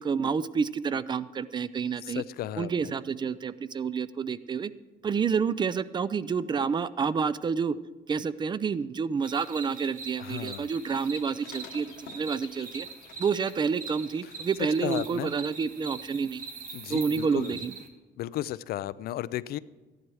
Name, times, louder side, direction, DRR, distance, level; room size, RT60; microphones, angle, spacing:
voice 1, 0.0-2.2 2.6-4.7 5.0-7.7 8.1-12.9 13.2-16.5 16.9-17.7, right 6 dB, 25° right, 17 dB, 0.4 m, -29 dB
voice 2, 2.0-2.9 10.2-10.7 14.2-14.3 14.6-15.3 16.7-17.6 18.2-19.6, left 13 dB, 65° left, 18 dB, 0.4 m, -34 dB
sound 1, 9.2-17.9, right 4 dB, 50° right, 1.5 m, -43 dB
sound 2, 10.8-14.5 14.8-15.1 17.4-17.5, left 8 dB, 85° left, 1.3 m, -51 dB
14.0 x 11.0 x 4.8 m, 1.3 s
cardioid pair, 110°, 17 cm